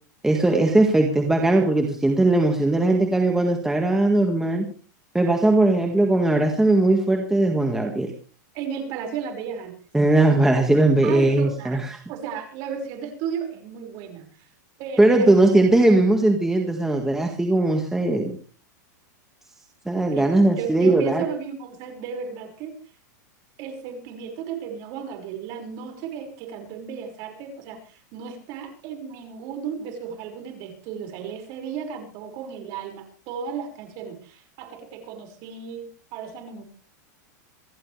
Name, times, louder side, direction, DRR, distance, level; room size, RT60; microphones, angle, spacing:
voice 1, 0.2-4.7 5.1-8.1 9.9-11.9 15.0-18.4 19.9-21.3, right 2 dB, 5° right, 2 dB, 1.9 m, -19 dB
voice 2, 8.5-9.8 11.0-14.5 14.8-15.3 20.1-20.3 20.5-22.7 23.6-36.6, right 7 dB, 40° right, 4 dB, 5.6 m, -34 dB
27.5 x 12.0 x 3.4 m, 0.39 s
supercardioid pair, 155°, 10 cm